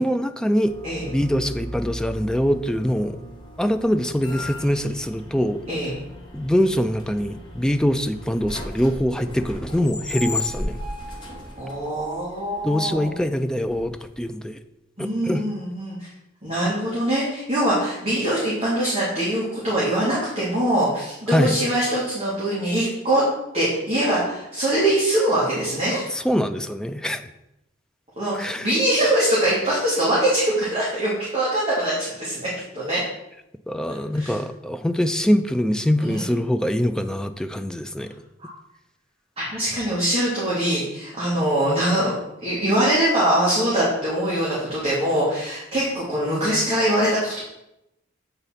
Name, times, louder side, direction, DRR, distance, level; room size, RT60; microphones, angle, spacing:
voice 1, 0.0-0.7 1.1-3.2 3.6-5.6 6.3-10.8 12.6-14.6 15.0-15.4 21.3-21.5 26.1-27.3 28.3-28.7 33.7-38.1, equal, 5° left, 8 dB, 0.4 m, -23 dB
sound 1, 0.6-14.3, left 2 dB, 25° left, 1.4 m, -36 dB
voice 2, 5.7-6.0 11.6-13.2 15.0-16.1 16.4-23.2 23.5-26.1 28.2-33.0 34.1-34.4 36.0-36.2 38.4-38.5 39.4-47.4, right 1 dB, 30° right, -8 dB, 2.1 m, -23 dB
8.2 x 4.1 x 5.6 m, 0.89 s
head